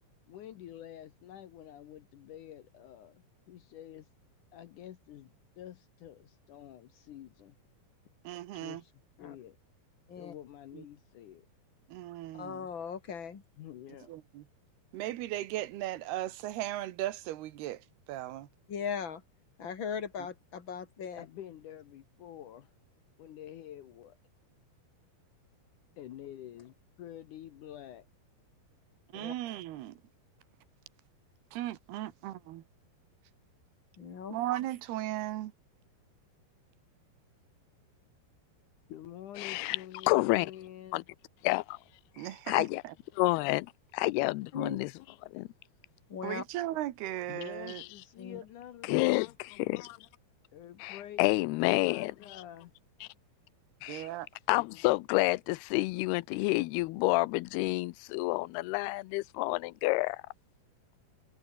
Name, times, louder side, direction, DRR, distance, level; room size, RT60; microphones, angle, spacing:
voice 1, 0.3-4.1 4.5-7.6 8.5-8.9 9.2-9.6 10.2-11.5 13.6-14.1 21.2-22.7 23.2-24.2 26.0-28.1 38.9-41.1 47.3-49.3 50.5-52.7, left 11 dB, 65° left, 2.2 m, -48 dB
voice 2, 8.2-8.8 10.7-10.8 11.9-12.6 14.1-14.4 14.9-17.8 18.1-18.5 29.1-30.0 31.5-32.6 34.3-35.5 42.2-42.9 46.2-47.8 53.9-54.3, right 14 dB, 85° right, 3.2 m, -37 dB
voice 3, 12.3-13.4 18.7-19.2 19.6-21.3 29.1-29.3 34.0-34.4 44.5-44.8 46.1-46.5 48.2-48.4, left 7 dB, 35° left, 2.7 m, -38 dB
voice 4, 39.4-39.8 40.0-40.5 40.9-41.0 41.4-41.8 42.5-42.8 43.2-44.9 45.3-45.5 48.9-49.3 49.6-50.0 50.8-52.1 53.8-54.1 54.5-60.2, left 22 dB, 85° left, 2.7 m, -29 dB
omnidirectional pair, 4.5 m